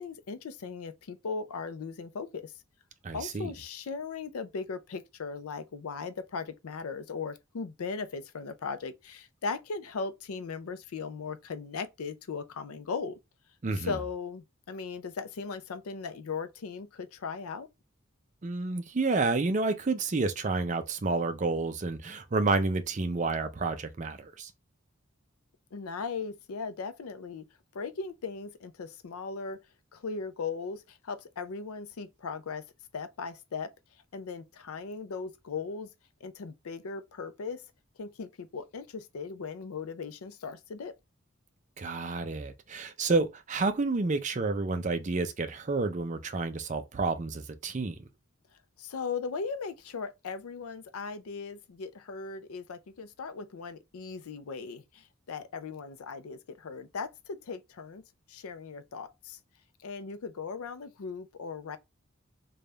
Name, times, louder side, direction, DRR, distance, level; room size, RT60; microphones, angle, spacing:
voice 1, 0.0-2.5 3.1-13.2 13.7-17.7 25.7-27.4 27.7-29.6 29.9-32.6 32.9-33.7 34.1-35.9 36.2-37.6 38.0-40.9 48.8-58.0 58.3-59.4 59.8-61.8, left 5 dB, 90° left, 0.5 m, -38 dB
voice 2, 3.0-3.5 13.6-14.0 18.4-24.5 41.8-48.1, right 3 dB, 35° right, 0.4 m, -30 dB
3.4 x 2.2 x 3.8 m
head